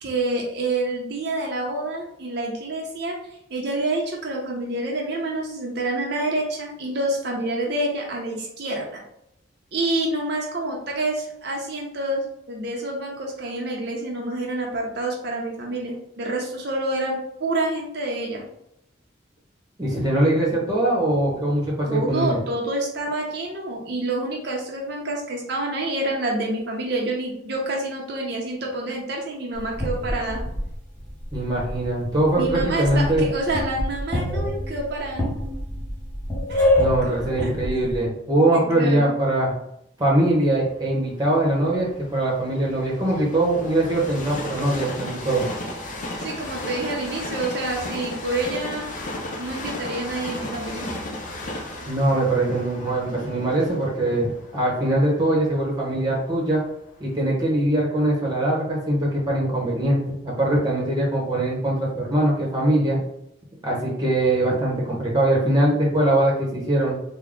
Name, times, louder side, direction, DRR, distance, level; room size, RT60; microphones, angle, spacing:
voice 1, 0.0-3.1 3.5-9.0 9.7-18.4 21.9-30.4 32.3-35.2 36.5-37.5 38.5-39.1 46.2-48.9 49.4-50.9, right 2 dB, 60° right, -1 dB, 0.7 m, -28 dB
voice 2, 19.8-22.4 31.3-33.3 36.8-39.5 40.0-45.5 51.9-56.6 57.0-63.0 63.6-67.0, right 1 dB, 20° right, -4 dB, 0.9 m, -22 dB
sound 1, 29.5-31.9 32.2-38.0, left 1 dB, 10° left, 0.9 m, -26 dB
Train, 40.6-56.5 57.1-57.2, left 1 dB, 45° left, 0.6 m, -35 dB
3.4 x 2.2 x 3.6 m, 0.80 s
head